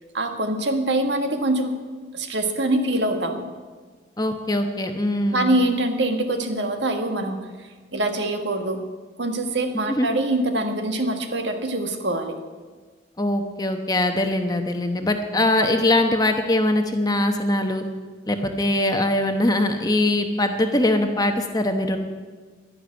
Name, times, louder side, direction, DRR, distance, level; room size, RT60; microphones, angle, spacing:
voice 1, 0.1-1.8 2.1-3.5 5.3-7.4 7.9-8.8 9.2-12.4, right 1 dB, 60° right, 6 dB, 1.6 m, -24 dB
voice 2, 4.2-5.5 9.9-10.1 13.2-17.8 18.3-22.0, left 1 dB, 20° left, 5 dB, 1.0 m, -22 dB
12.0 x 11.5 x 9.6 m, 1.4 s
head